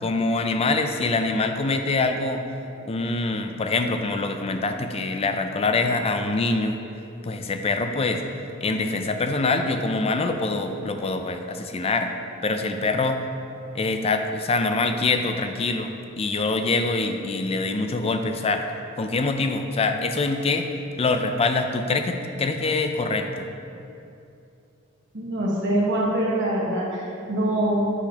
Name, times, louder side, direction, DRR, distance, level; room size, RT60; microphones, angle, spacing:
voice 1, 0.0-2.4 2.9-6.8 7.2-8.2 8.6-12.1 12.4-13.2 13.7-15.9 16.2-18.6 19.0-20.7 21.0-23.5, left 3 dB, 30° left, 6 dB, 0.4 m, -24 dB
voice 2, 25.1-27.9, right 1 dB, 60° right, -4 dB, 1.3 m, -24 dB
8.2 x 5.9 x 2.9 m, 2.7 s
head